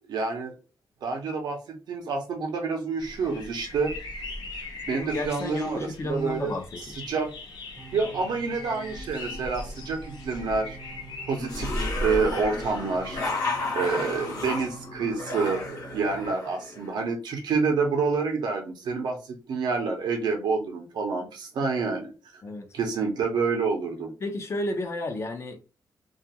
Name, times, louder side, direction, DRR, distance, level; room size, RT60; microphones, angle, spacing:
voice 1, 0.1-0.5 1.0-4.0 4.9-6.5 7.1-7.3 7.9-10.8 11.3-13.2 13.7-22.4 22.7-24.1, right 4 dB, 90° right, 0.6 m, -28 dB
sound 1, 3.0-13.3, left 1 dB, 80° left, 0.7 m, -38 dB
voice 2, 5.0-6.8 22.4-22.7 24.2-25.6, left 2 dB, 40° left, 0.6 m, -32 dB
sound 2, 7.8-16.3, right 3 dB, 25° right, 0.6 m, -46 dB
sound 3, 11.4-16.9, left 3 dB, 60° left, 1.1 m, -33 dB
2.4 x 2.3 x 2.8 m
wide cardioid pair, 135°, 7 cm